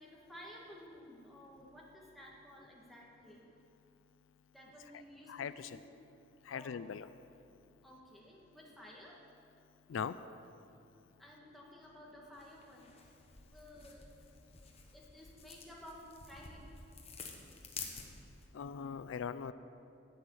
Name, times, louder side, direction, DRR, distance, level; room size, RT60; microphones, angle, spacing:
voice 1, 0.0-3.4 4.5-5.9 6.5-6.8 7.8-9.2 11.2-13.0 13.5-14.1 14.9-16.7, equal, ahead, -4 dB, 1.8 m, -54 dB
voice 2, 5.3-5.8 6.5-7.1 9.9-10.2 18.5-19.5, left 7 dB, 85° left, 14 dB, 0.4 m, -40 dB
sound 1, 12.3-18.5, left 5 dB, 30° left, 1.2 m, -51 dB
12.0 x 6.4 x 8.5 m, 2.7 s
head